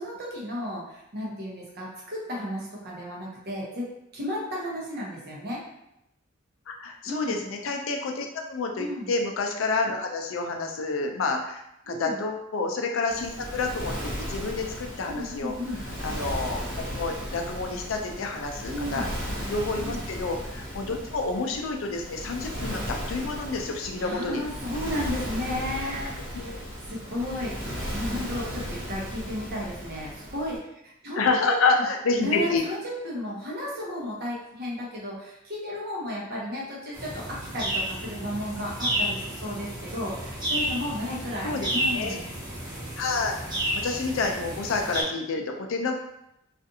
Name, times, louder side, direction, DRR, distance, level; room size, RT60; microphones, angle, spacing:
voice 1, 0.0-3.9 4.1-5.6 7.0-7.4 8.8-9.1 11.9-12.2 15.1-15.8 18.7-19.1 19.8-20.0 24.0-26.5 26.8-30.6 30.8-31.8 32.2-42.3, left 1 dB, 55° right, -4 dB, 0.8 m, -33 dB
voice 2, 6.7-15.5 16.0-16.6 16.9-19.1 19.5-24.4 26.3-26.6 31.2-32.6 41.4-42.2 43.0-43.4 43.8-45.9, left 3 dB, 75° left, 3 dB, 0.4 m, -29 dB
Waves surf, 13.1-30.6, equal, 80° right, 1.0 m, -35 dB
sound 1, 36.9-45.0, right 1 dB, 20° right, 1.1 m, -31 dB
2.5 x 2.4 x 2.6 m, 0.82 s
head